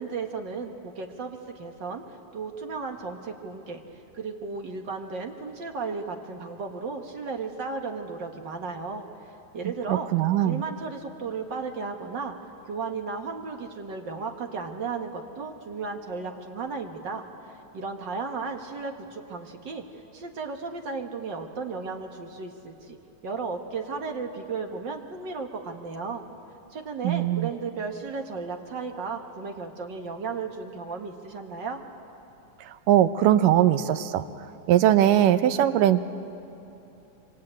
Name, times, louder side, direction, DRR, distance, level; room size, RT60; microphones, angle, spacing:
voice 1, 0.0-2.0 2.3-3.8 4.1-9.0 9.5-10.1 10.4-12.4 12.7-19.8 20.1-23.0 23.2-26.2 26.7-31.8, right 4 dB, 45° right, 3 dB, 1.6 m, -34 dB
voice 2, 9.9-10.6 27.0-27.5 32.9-34.2 34.7-36.0, right 11 dB, 90° right, 11 dB, 2.5 m, -20 dB
26.0 x 25.0 x 8.9 m, 3.0 s
omnidirectional pair, 3.7 m